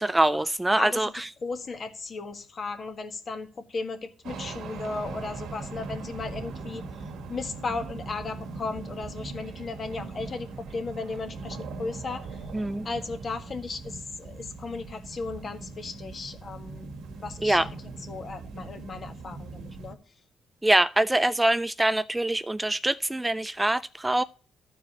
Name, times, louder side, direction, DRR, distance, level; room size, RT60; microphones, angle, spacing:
voice 1, 0.0-1.3 12.5-12.9 17.4-17.7 20.6-24.2, right 1 dB, 10° right, 0.3 m, -24 dB
voice 2, 0.8-1.1 1.4-6.9 7.3-12.4 12.8-17.7 18.1-20.0, left 3 dB, 40° left, 1.6 m, -36 dB
sound 1, 4.2-19.9, right 3 dB, 75° right, 1.8 m, -40 dB
14.0 x 4.7 x 4.1 m
cardioid pair, 90°, 0 cm